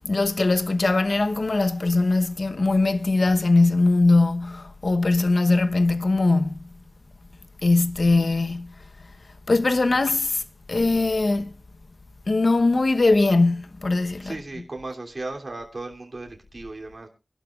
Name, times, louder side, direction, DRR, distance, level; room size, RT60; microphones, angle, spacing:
voice 1, 0.0-6.7 7.6-8.7 9.5-10.4 10.7-11.5 12.3-14.6, left 2 dB, 65° left, 1.0 m, -21 dB
voice 2, 14.2-17.1, right 2 dB, 55° right, 3.1 m, -36 dB
24.5 x 11.5 x 2.4 m
wide cardioid pair, 65°, 0 cm